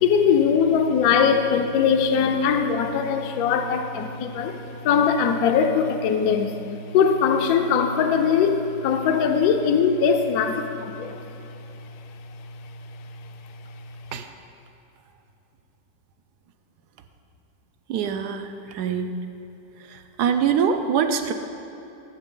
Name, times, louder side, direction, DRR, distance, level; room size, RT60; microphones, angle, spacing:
voice 1, 0.0-4.6 4.8-6.5 6.9-11.2, left 6 dB, 65° left, 6 dB, 1.0 m, -21 dB
voice 2, 17.9-19.1 19.9-21.3, right 7 dB, 75° right, 7 dB, 1.0 m, -24 dB
13.0 x 7.2 x 3.8 m, 3.0 s
omnidirectional pair, 2.0 m